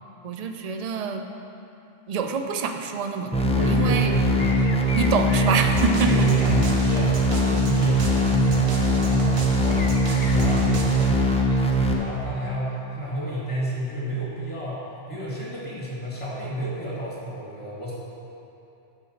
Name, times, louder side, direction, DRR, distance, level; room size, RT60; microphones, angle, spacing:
voice 1, 0.2-1.2 2.1-4.1 4.9-6.3, right 5 dB, 50° right, 5 dB, 0.5 m, -26 dB
sound 1, 3.3-11.9, equal, 5° left, 0.6 m, -21 dB
voice 2, 3.5-4.9 6.0-9.9 10.3-17.9, right 1 dB, 25° left, -7 dB, 2.0 m, -30 dB
sound 2, 4.3-7.0 9.7-10.9 11.2-11.7, left 3 dB, 50° left, 0.8 m, -39 dB
sound 3, 5.6-11.1, right 1 dB, 75° right, 1.2 m, -33 dB
8.7 x 4.7 x 6.4 m, 2.9 s
omnidirectional pair, 1.2 m